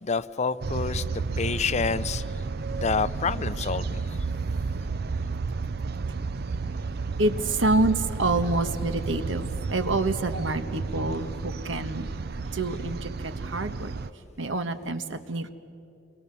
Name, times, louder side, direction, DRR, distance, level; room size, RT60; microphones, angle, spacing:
voice 1, 0.0-2.4 2.7-4.2, left 5 dB, 35° left, 0.6 m, -28 dB
sound 1, 0.6-14.1, right 4 dB, 55° right, 0.5 m, -32 dB
voice 2, 7.2-12.1 12.4-13.9 14.4-15.5, right 2 dB, 80° right, 1.4 m, -27 dB
29.5 x 23.0 x 6.9 m
head